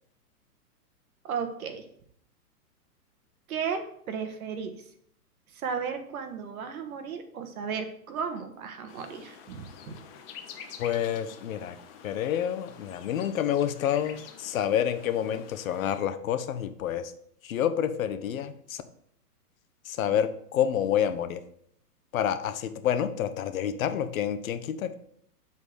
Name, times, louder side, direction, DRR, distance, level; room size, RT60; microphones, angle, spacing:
voice 1, 1.2-1.8 3.5-4.8 5.5-10.0, right 6 dB, 65° right, 7 dB, 1.5 m, -34 dB
sound 1, 8.9-16.0, left 7 dB, 40° left, 1.1 m, -48 dB
voice 2, 10.8-11.8 12.0-17.1 17.4-18.8 19.8-21.4 22.1-24.9, left 9 dB, 60° left, 11 dB, 0.9 m, -28 dB
7.2 x 4.1 x 6.4 m, 0.67 s
hypercardioid pair, 140°, 47 cm